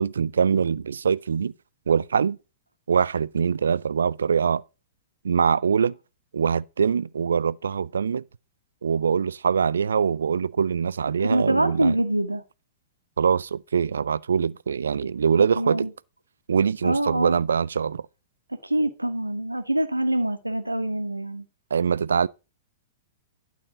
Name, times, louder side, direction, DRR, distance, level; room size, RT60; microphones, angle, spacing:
voice 1, 0.0-1.5 1.9-2.4 2.9-4.6 5.2-6.0 6.3-8.2 8.8-12.0 13.2-15.9 16.5-18.0 21.7-22.3, right 6 dB, 70° right, 0.4 m, -23 dB
voice 2, 11.2-12.4 15.4-15.9 16.8-17.4 18.6-21.4, right 1 dB, 90° right, 1.3 m, -25 dB
12.0 x 4.1 x 6.7 m
figure-of-eight pair, 105°, 0 cm